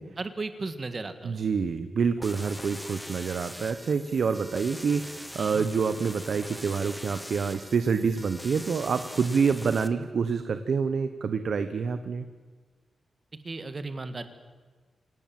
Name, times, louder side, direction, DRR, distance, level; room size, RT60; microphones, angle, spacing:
voice 1, 0.2-1.4 5.4-5.6 13.4-14.3, right 3 dB, 30° right, 10 dB, 1.7 m, -35 dB
voice 2, 1.2-12.3, right 5 dB, 55° right, 10 dB, 1.0 m, -27 dB
sound 1, 2.2-9.9, equal, ahead, 1.1 m, -42 dB
27.0 x 17.5 x 7.7 m, 1.5 s
wide cardioid pair, 165°, 0 cm